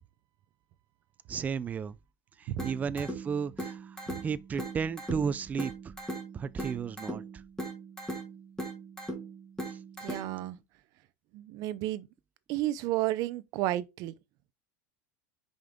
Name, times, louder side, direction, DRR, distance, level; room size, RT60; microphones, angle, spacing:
voice 1, 1.3-2.0 2.4-5.9 6.3-7.4 9.7-9.8, right 6 dB, 20° right, 0.4 m, -34 dB
sound 1, 2.6-10.6, right 1 dB, 5° left, 2.9 m, -40 dB
voice 2, 10.0-10.6 11.3-12.1 12.5-14.1, right 15 dB, 50° right, 0.7 m, -32 dB
5.8 x 5.2 x 3.7 m
supercardioid pair, 145°, 8 cm